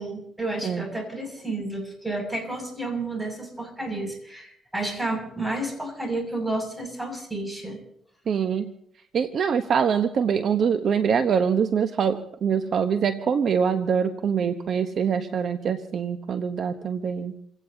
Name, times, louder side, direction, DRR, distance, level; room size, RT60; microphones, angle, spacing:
voice 1, 0.0-7.8, right 2 dB, 10° right, 3 dB, 6.6 m, -31 dB
voice 2, 8.3-8.7 9.1-17.3, right 7 dB, 60° right, 8 dB, 1.0 m, -24 dB
28.5 x 17.0 x 2.8 m, 0.70 s
cardioid pair, 90°, 0 cm